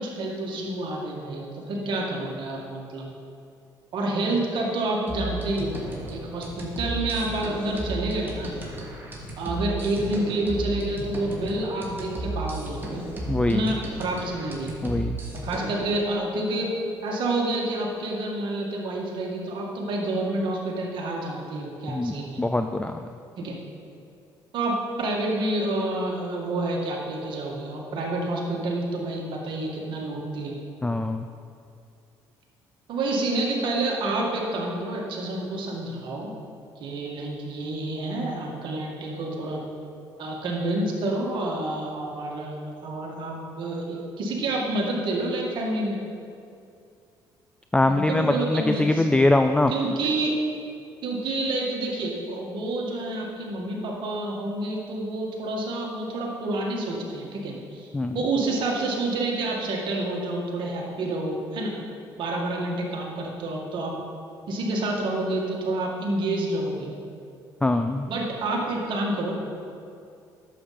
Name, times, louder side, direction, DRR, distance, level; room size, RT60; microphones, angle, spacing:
voice 1, 0.0-3.1 3.9-5.8 6.1-8.5 9.4-13.1 13.5-14.7 15.3-16.7 17.0-22.4 23.4-23.6 24.5-30.6 32.9-36.3 36.8-39.6 40.2-46.0 47.9-49.1 49.7-50.4 51.0-57.9 58.1-61.7 62.2-63.9 64.5-66.9 68.1-69.3, right 2 dB, 65° right, -1 dB, 2.1 m, -28 dB
sound 1, 5.1-15.9, right 2 dB, 25° right, 2.7 m, -34 dB
voice 2, 13.3-13.7 14.8-15.2 21.9-23.0 30.8-31.3 47.7-49.7 57.9-58.2 67.6-68.1, left 2 dB, 10° left, 7 dB, 0.4 m, -23 dB
11.0 x 7.9 x 4.4 m, 2.5 s
supercardioid pair, 80°, 9 cm